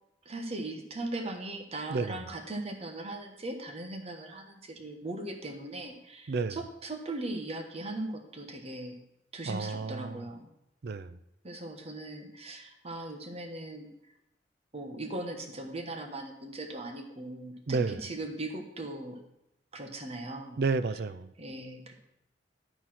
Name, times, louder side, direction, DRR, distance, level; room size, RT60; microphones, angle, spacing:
voice 1, 0.2-8.9 9.3-10.5 11.4-13.9 14.7-19.2 19.7-20.6 21.4-21.9, right 2 dB, 35° right, 1.1 m, -39 dB
voice 2, 1.9-2.2 6.3-6.6 9.5-10.3 10.8-11.2 17.7-18.0 20.6-21.3, right 4 dB, 60° right, 0.5 m, -31 dB
11.5 x 4.2 x 5.9 m
head